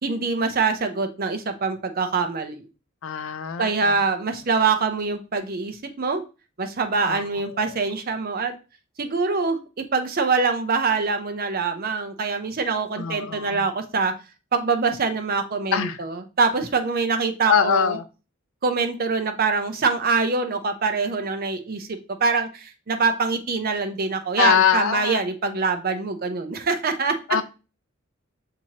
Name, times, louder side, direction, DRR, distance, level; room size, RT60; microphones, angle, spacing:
voice 1, 0.0-2.6 3.6-6.2 6.6-8.5 9.0-14.1 14.5-18.0 18.6-27.2, right 4 dB, 45° right, 7 dB, 0.6 m, -24 dB
voice 2, 3.0-4.0 7.0-7.8 13.0-13.7 15.7-16.0 17.4-18.0 24.4-25.2 27.3-27.4, left 7 dB, 70° left, 10 dB, 0.5 m, -23 dB
6.1 x 2.8 x 2.9 m, 0.31 s
head